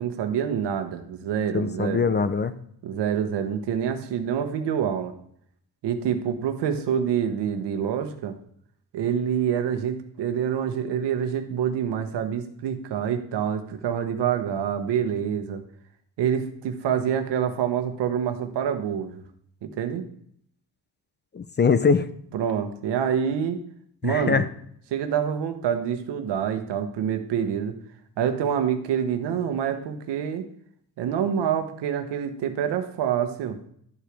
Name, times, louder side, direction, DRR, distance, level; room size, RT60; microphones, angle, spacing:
voice 1, 0.0-2.1 2.8-5.1 5.8-8.3 8.9-15.6 16.2-19.2 19.6-20.0 22.3-23.6 24.0-24.5 24.9-27.8 28.2-30.4 31.0-33.6, right 8 dB, 90° right, 8 dB, 1.0 m, -26 dB
voice 2, 1.5-2.6 21.3-22.1 24.0-24.4, left 5 dB, 25° left, 13 dB, 0.5 m, -22 dB
12.0 x 4.8 x 3.4 m, 0.68 s
cardioid pair, 95°, 40 cm